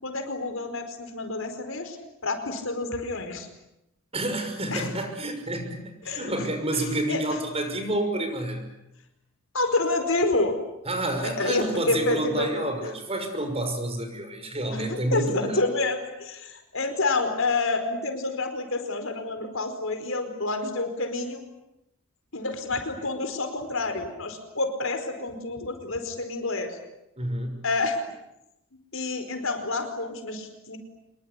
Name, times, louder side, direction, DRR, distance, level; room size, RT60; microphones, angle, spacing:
voice 1, 0.0-2.0 2.2-3.5 4.7-4.9 6.0-6.3 7.1-7.4 9.5-10.6 11.2-12.7 14.7-21.4 22.3-26.8 27.6-28.0 28.9-30.8, left 3 dB, 70° left, 7 dB, 4.9 m, -28 dB
voice 2, 4.1-8.7 10.9-15.6 27.2-27.7, right 1 dB, 30° right, 6 dB, 6.0 m, -29 dB
26.0 x 22.5 x 10.0 m, 0.89 s
head